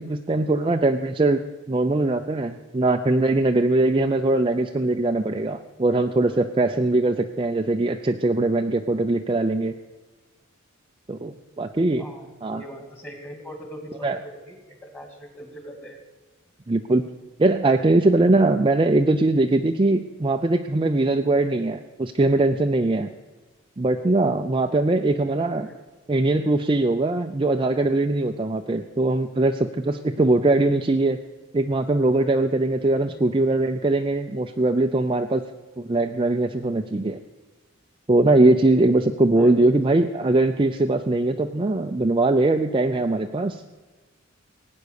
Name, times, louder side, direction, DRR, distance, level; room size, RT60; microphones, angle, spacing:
voice 1, 0.0-1.4 1.7-9.7 11.1-12.0 12.4-12.6 14.0-14.2 16.7-17.0 17.4-23.1 23.8-25.7 26.1-31.2 31.5-35.4 35.8-37.2 38.1-43.6, right 2 dB, 25° right, 5 dB, 0.5 m, -21 dB
voice 2, 12.0-16.0 25.4-25.7 33.1-33.3 39.3-39.8, equal, 10° left, 4 dB, 2.1 m, -41 dB
17.0 x 9.5 x 6.5 m, 1.3 s
head